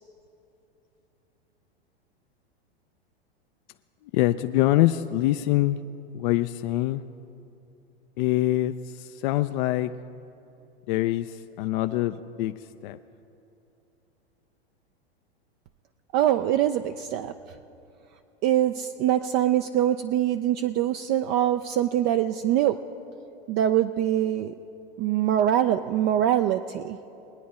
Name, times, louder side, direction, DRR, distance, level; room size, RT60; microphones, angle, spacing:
voice 1, 4.0-5.8 6.1-7.0 8.2-9.9 10.9-13.0, left 15 dB, 50° left, 9 dB, 0.4 m, -25 dB
voice 2, 16.1-17.3 18.4-22.8 23.5-24.5 25.0-27.0, right 11 dB, 35° right, 8 dB, 0.4 m, -23 dB
21.0 x 9.2 x 4.2 m, 2.8 s
hypercardioid pair, 100°, 31 cm